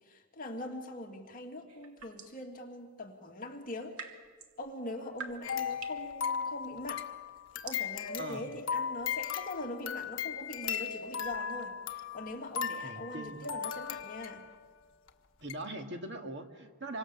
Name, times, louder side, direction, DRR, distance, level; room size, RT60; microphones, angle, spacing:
voice 1, 0.1-4.0 4.6-7.1 7.6-14.4, left 1 dB, 40° left, 1 dB, 2.8 m, -42 dB
sound 1, 1.7-2.5 3.6-11.3, right 5 dB, 85° right, 2.3 m, -50 dB
sound 2, 5.4-14.6 15.1-15.2 15.5-15.6, left 7 dB, 60° left, 1.4 m, -37 dB
voice 2, 12.8-13.4 15.4-17.0, right 1 dB, 50° right, 4 dB, 2.1 m, -41 dB
27.0 x 25.0 x 7.3 m, 1.5 s
head